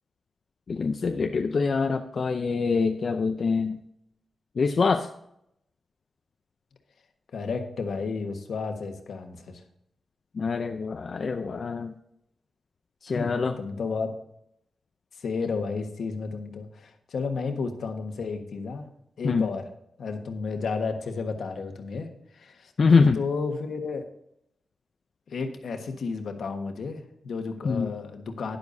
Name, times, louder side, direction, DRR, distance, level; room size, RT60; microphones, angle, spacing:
voice 1, 0.7-3.8 4.6-5.1 10.4-11.9 13.0-13.5 19.2-19.5 22.8-23.2 27.6-27.9, left 4 dB, 45° left, 5 dB, 0.5 m, -24 dB
voice 2, 7.3-9.6 13.1-14.1 15.2-18.9 19.2-19.7 20.0-22.1 22.3-22.7 23.1-24.0 25.3-28.6, left 4 dB, 70° left, 5 dB, 1.4 m, -32 dB
11.5 x 10.5 x 2.7 m, 0.76 s
wide cardioid pair, 155°, 0 cm